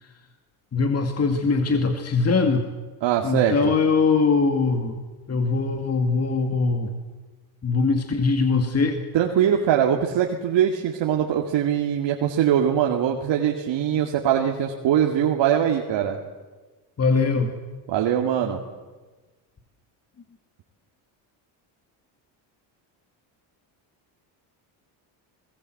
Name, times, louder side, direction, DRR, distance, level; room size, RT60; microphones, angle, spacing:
voice 1, 0.7-2.6 3.2-4.9 5.3-6.9 7.6-9.0 17.0-17.5, left 4 dB, 30° left, 5 dB, 2.3 m, -21 dB
voice 2, 3.0-3.7 9.1-16.2 17.9-18.6, right 9 dB, 60° right, 1 dB, 2.4 m, -22 dB
28.0 x 20.5 x 7.8 m, 1.3 s
cardioid pair, 100°, 47 cm